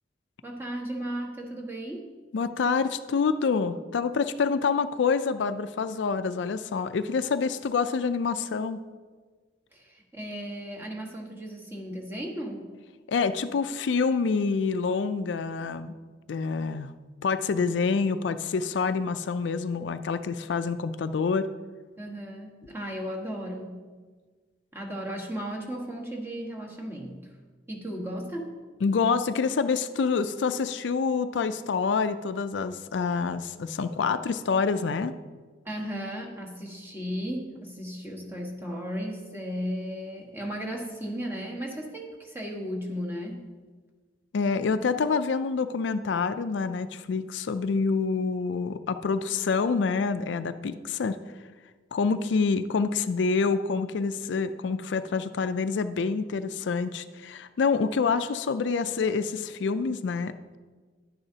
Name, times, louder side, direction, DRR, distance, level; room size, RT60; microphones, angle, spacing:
voice 1, 0.4-2.1 9.7-12.7 22.0-23.8 24.7-27.2 27.7-28.5 35.6-43.5, equal, 15° right, -2 dB, 1.4 m, -35 dB
voice 2, 2.3-8.8 13.1-15.9 16.3-16.9 17.2-21.5 28.8-35.1 44.3-51.2 51.9-60.6, left 5 dB, 85° left, 11 dB, 0.4 m, -27 dB
10.5 x 9.8 x 2.8 m, 1.4 s
head